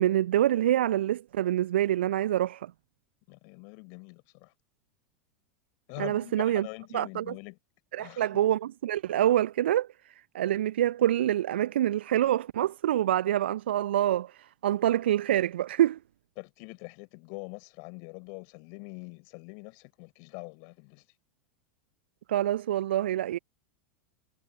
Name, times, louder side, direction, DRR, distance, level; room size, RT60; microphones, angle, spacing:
voice 1, 0.0-2.7 6.0-6.7 6.9-7.3 7.9-16.0 22.3-23.4, right 12 dB, 65° right, 1.0 m, -26 dB
voice 2, 3.3-4.5 5.9-7.6 8.0-8.3 16.4-21.1, left 40 dB or more, 50° left, 6.8 m, -44 dB
figure-of-eight pair, 85°, 6 cm